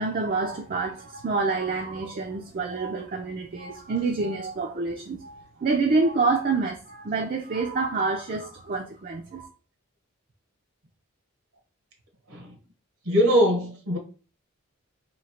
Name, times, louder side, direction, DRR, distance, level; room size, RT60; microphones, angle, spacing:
voice 1, 0.0-9.5, right 3 dB, 40° right, 0.4 m, -27 dB
voice 2, 13.1-14.0, equal, 75° right, 0.9 m, -21 dB
3.0 x 2.7 x 4.2 m
head